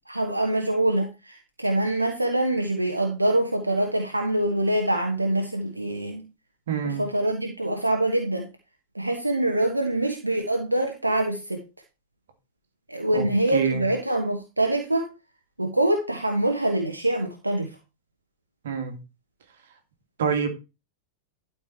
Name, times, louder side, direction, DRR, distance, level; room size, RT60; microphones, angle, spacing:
voice 1, 0.1-6.2 6.8-8.5 8.9-11.6 12.9-15.1 15.6-17.7, right 1 dB, 85° right, 1.3 m, -25 dB
voice 2, 6.7-7.0 13.1-13.9 18.6-19.0 20.2-20.5, right 6 dB, 60° right, 2.3 m, -26 dB
12.0 x 5.3 x 4.4 m
figure-of-eight pair, 90°, 0 cm